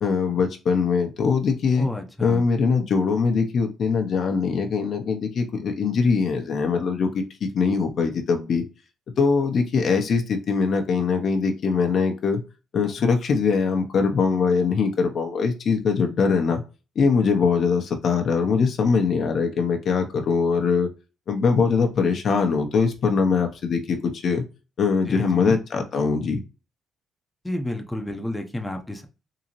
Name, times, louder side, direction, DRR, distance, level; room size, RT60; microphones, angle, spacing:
voice 1, 0.0-1.9 2.2-8.6 9.2-12.4 12.7-16.6 17.0-20.9 21.3-24.5 24.8-26.4, left 5 dB, 60° left, 4 dB, 0.8 m, -22 dB
voice 2, 1.8-2.5 25.1-25.5 27.4-29.1, left 1 dB, 10° left, 3 dB, 0.7 m, -30 dB
3.8 x 2.8 x 3.0 m, 0.31 s
cardioid pair, 90°, 0 cm